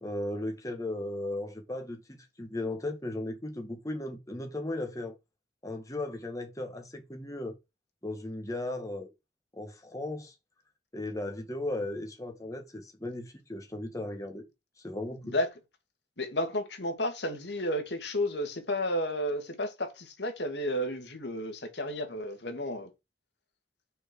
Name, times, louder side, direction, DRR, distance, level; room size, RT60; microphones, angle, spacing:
voice 1, 0.0-5.2 5.6-7.6 8.0-9.1 9.6-10.3 10.9-14.4 14.8-15.4, left 1 dB, 20° left, 1.8 m, -36 dB
voice 2, 16.2-22.9, left 1 dB, 70° left, 2.2 m, -32 dB
6.3 x 4.7 x 6.2 m
head